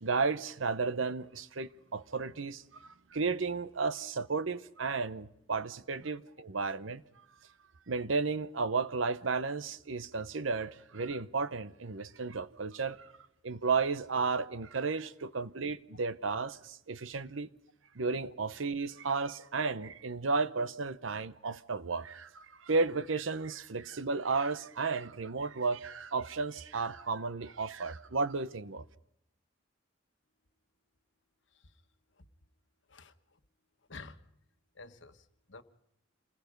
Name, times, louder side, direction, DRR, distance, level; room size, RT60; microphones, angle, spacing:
voice 1, 0.0-7.0 7.9-13.1 13.4-17.5 17.9-28.8, right 4 dB, 80° right, 0.9 m, -33 dB
voice 2, 34.7-35.6, left 3 dB, 65° left, 1.3 m, -49 dB
28.0 x 20.0 x 5.3 m
head